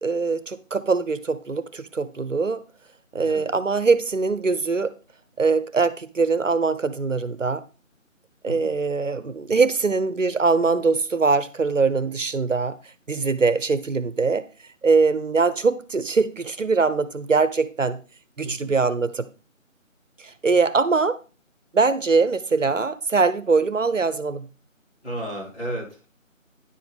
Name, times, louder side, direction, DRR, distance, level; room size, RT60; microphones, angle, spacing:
voice 1, 0.0-2.6 3.1-4.9 5.4-7.6 8.4-12.8 13.1-14.4 14.8-18.0 18.4-19.3 20.2-21.2 21.7-24.4, right 4 dB, 65° right, 0.9 m, -22 dB
voice 2, 3.2-3.5 8.4-8.7 18.4-18.7 25.0-26.1, right 1 dB, 55° left, 5.1 m, -33 dB
10.0 x 7.6 x 3.5 m
figure-of-eight pair, 180°, 40 cm